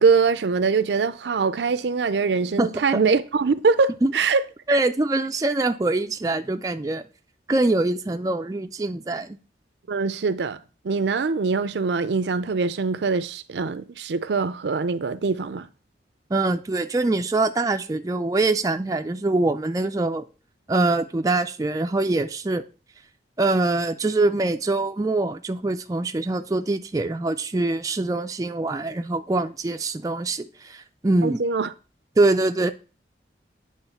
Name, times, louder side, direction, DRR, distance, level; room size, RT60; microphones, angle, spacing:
voice 1, 0.0-4.4 4.7-4.8 9.9-10.6 10.8-15.7 31.2-31.7, right 4 dB, 75° right, 0.5 m, -23 dB
voice 2, 4.7-7.0 7.5-9.4 16.3-20.3 20.7-22.6 23.4-31.4 32.2-32.7, right 2 dB, 20° right, 0.3 m, -24 dB
8.9 x 3.1 x 5.6 m
head